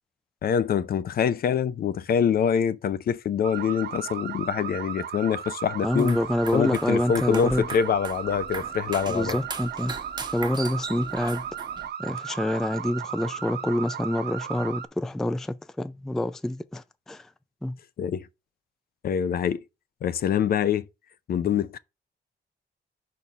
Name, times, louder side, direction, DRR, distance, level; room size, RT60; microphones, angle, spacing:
voice 1, 0.4-6.2 6.5-9.4 18.0-18.3 19.0-19.6 20.0-20.9 21.3-21.8, left 8 dB, 55° left, 0.5 m, -25 dB
sound 1, 3.4-14.9, right 9 dB, 65° right, 0.9 m, -36 dB
voice 2, 5.8-7.7 9.1-9.9 10.3-11.5 12.0-17.3 17.6-17.8, left 1 dB, ahead, 0.3 m, -27 dB
sound 2, 5.9-11.9, right 4 dB, 25° right, 1.0 m, -39 dB
5.4 x 4.4 x 6.0 m
wide cardioid pair, 165°, 19 cm